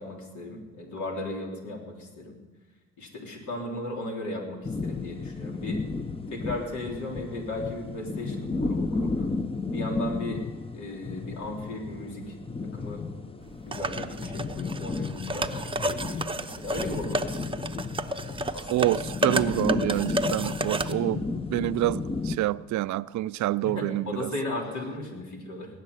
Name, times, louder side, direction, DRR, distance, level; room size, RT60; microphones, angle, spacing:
voice 1, 0.0-2.4 3.0-5.8 6.3-9.3 9.7-10.4 10.7-12.4 12.7-13.0 13.6-17.7 18.5-18.9 23.6-25.7, left 2 dB, 75° left, 3.9 m, -36 dB
sound 1, 4.6-22.4, left 3 dB, 20° left, 0.7 m, -33 dB
sound 2, 13.7-20.9, right 1 dB, 15° right, 0.7 m, -31 dB
voice 2, 18.7-24.3, right 15 dB, 70° right, 0.5 m, -27 dB
18.5 x 6.7 x 9.8 m
cardioid pair, 90°, 30 cm